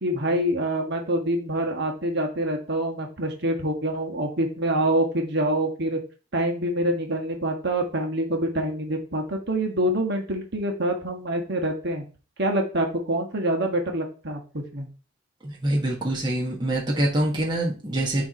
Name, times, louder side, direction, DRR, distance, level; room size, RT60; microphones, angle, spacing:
voice 1, 0.0-6.0 6.3-12.0 12.4-14.9, right 1 dB, 55° right, 2 dB, 1.5 m, -26 dB
voice 2, 15.4-18.2, right 1 dB, 20° right, -3 dB, 1.3 m, -25 dB
7.0 x 3.2 x 5.2 m, 0.36 s
head